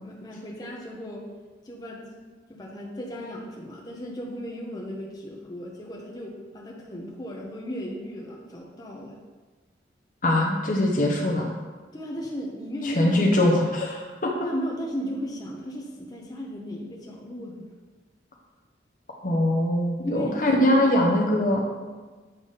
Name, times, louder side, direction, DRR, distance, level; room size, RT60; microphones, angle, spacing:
voice 1, 0.0-1.3 1.6-2.2 2.5-9.2 11.9-13.6 14.4-17.7 20.0-20.5, equal, 20° left, -3 dB, 0.9 m, -35 dB
voice 2, 10.2-11.5 12.8-14.3 19.2-21.6, left 1 dB, 45° left, 0 dB, 0.9 m, -22 dB
8.2 x 3.5 x 5.6 m, 1.4 s
head